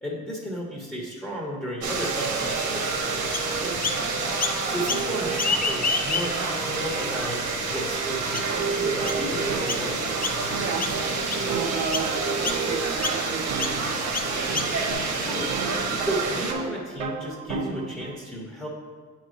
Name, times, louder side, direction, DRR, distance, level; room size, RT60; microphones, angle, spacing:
voice 1, 0.0-2.8 4.7-7.4 7.7-10.0 15.1-15.5 16.0-18.7, equal, 5° left, -4 dB, 1.3 m, -33 dB
sound 1, 1.8-16.5, right 4 dB, 55° right, 1.2 m, -28 dB
Chirp tweet, 3.3-4.0 4.4-5.1 5.3-6.5 7.1-7.2 7.9-8.0 8.3-8.6 9.1-9.2 9.7-9.9 10.2-10.5 10.8-11.5 11.9-12.1 12.4-12.6 13.0-13.2 13.6-13.8 14.1-14.9, left 4 dB, 30° left, 0.5 m, -29 dB
sound 2, 8.3-18.2, right 6 dB, 90° right, 0.7 m, -36 dB
voice 2, 10.6-14.0, right 4 dB, 35° right, 0 dB, 1.4 m, -34 dB
8.3 x 3.2 x 5.2 m, 1.5 s
cardioid pair, 90°, 30 cm